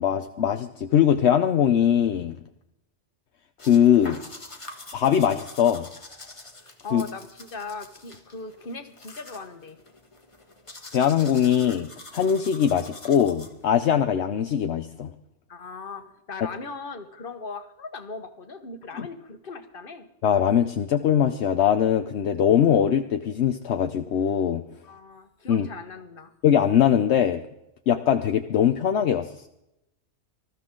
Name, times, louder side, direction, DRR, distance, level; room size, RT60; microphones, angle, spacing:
voice 1, 0.0-2.4 3.6-4.2 4.9-5.9 6.9-7.0 10.9-15.1 19.0-19.1 20.2-24.6 25.5-25.7 26.4-27.4 27.9-29.5, left 9 dB, 70° left, 7 dB, 1.0 m, -21 dB
sound 1, 3.6-13.8, left 2 dB, 25° left, 1.5 m, -45 dB
voice 2, 6.8-9.8 15.5-20.1 24.8-26.3, left 3 dB, 50° left, 8 dB, 1.5 m, -39 dB
20.0 x 14.0 x 3.8 m, 0.84 s
omnidirectional pair, 1.2 m